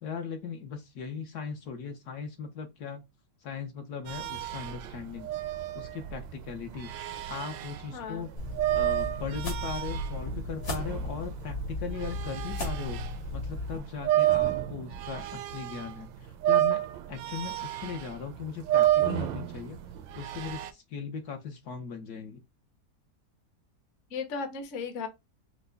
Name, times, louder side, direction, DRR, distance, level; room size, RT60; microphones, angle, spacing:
voice 1, 0.0-3.0 3.4-5.3 5.7-8.3 8.7-16.8 17.1-19.8 20.1-22.4, left 6 dB, 65° left, 1.4 m, -38 dB
sound 1, 4.1-13.2 13.6-16.0 16.3-20.7, right 13 dB, 90° right, 1.3 m, -30 dB
voice 2, 7.9-8.3 24.1-25.1, left 5 dB, 50° left, 1.2 m, -35 dB
sound 2, 8.4-13.8, left 1 dB, 85° left, 2.8 m, -35 dB
5.6 x 2.1 x 3.8 m
omnidirectional pair, 1.9 m